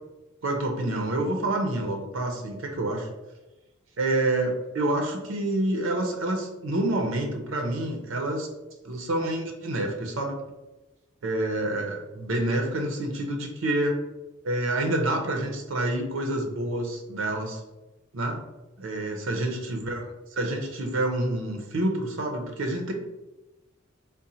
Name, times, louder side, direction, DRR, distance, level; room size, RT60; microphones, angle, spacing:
voice 1, 0.4-3.1 4.0-8.5 8.8-10.4 11.2-14.0 14.4-17.6 18.1-18.4 18.8-20.0 20.3-22.9, right 1 dB, 80° right, 2 dB, 0.6 m, -28 dB
3.8 x 2.1 x 4.1 m, 1.1 s
head